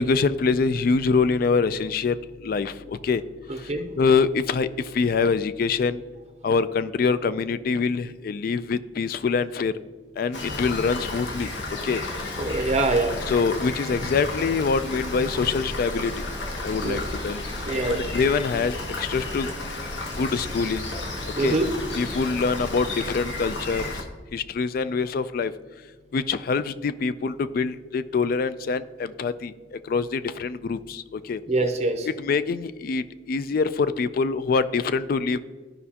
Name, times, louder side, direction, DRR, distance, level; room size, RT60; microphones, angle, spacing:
voice 1, 0.0-2.2 2.4-3.2 4.0-4.7 4.9-6.0 6.4-9.7 10.2-11.5 11.8-12.0 13.3-16.1 16.6-17.4 17.9-19.5 20.2-20.8 21.4-21.6 21.9-23.8 24.3-25.5 26.1-31.4 32.1-35.4, left 4 dB, 55° left, 14 dB, 0.3 m, -24 dB
Rain, 10.3-24.0, left 2 dB, 85° left, 1.1 m, -32 dB
voice 2, 12.4-13.2 16.8-17.0 17.6-18.1 21.4-21.7 31.5-32.1, right 2 dB, 40° right, 6 dB, 0.6 m, -24 dB
13.0 x 5.2 x 2.8 m, 1.4 s
head